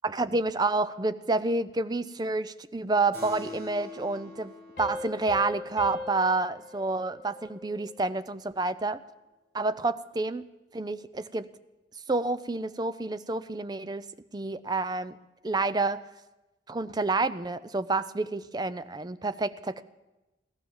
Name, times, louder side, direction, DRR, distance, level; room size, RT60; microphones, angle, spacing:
voice 1, 0.0-4.5 4.8-9.0 9.5-10.4 10.7-11.5 12.1-14.0 14.3-15.2 15.4-16.0 16.7-19.8, right 3 dB, 20° right, 14 dB, 0.4 m, -29 dB
Keyboard (musical), 3.1-8.0, left 2 dB, 50° right, 7.3 m, -47 dB
sound 1, 4.8-8.1, left 2 dB, 45° left, 2.4 m, -40 dB
16.5 x 12.0 x 7.2 m, 1.0 s
head